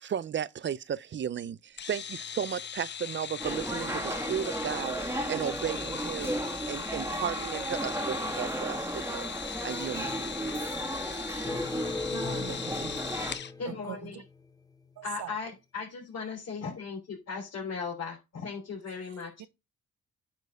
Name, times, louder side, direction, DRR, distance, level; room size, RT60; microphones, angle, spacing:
voice 1, 0.0-6.4 6.7-10.3, right 8 dB, 40° right, 0.5 m, -35 dB
sound 1, 1.8-13.5, left 8 dB, 35° left, 0.6 m, -40 dB
sound 2, 3.4-13.4, right 1 dB, 10° right, 1.9 m, -34 dB
sound 3, 11.4-14.5, left 3 dB, 10° left, 0.9 m, -38 dB
voice 2, 12.1-13.0 13.6-14.2 15.0-15.3 19.4-19.5, right 12 dB, 75° right, 0.9 m, -42 dB
voice 3, 13.3-14.2 15.0-19.5, left 5 dB, 55° left, 3.7 m, -37 dB
9.3 x 4.6 x 4.8 m
cardioid pair, 90°, 30 cm